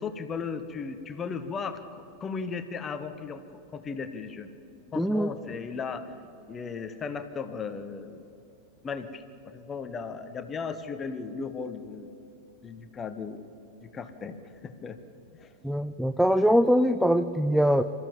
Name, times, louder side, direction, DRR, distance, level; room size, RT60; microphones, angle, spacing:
voice 1, 0.0-3.4 3.7-4.5 4.9-6.0 6.5-8.2 8.8-12.1 12.6-13.5 13.8-15.0 15.3-15.5, left 5 dB, 25° left, 9 dB, 1.2 m, -36 dB
voice 2, 5.0-5.3 15.6-17.8, equal, ahead, 11 dB, 0.6 m, -22 dB
26.0 x 14.5 x 7.4 m, 3.0 s
figure-of-eight pair, 90°, 0 cm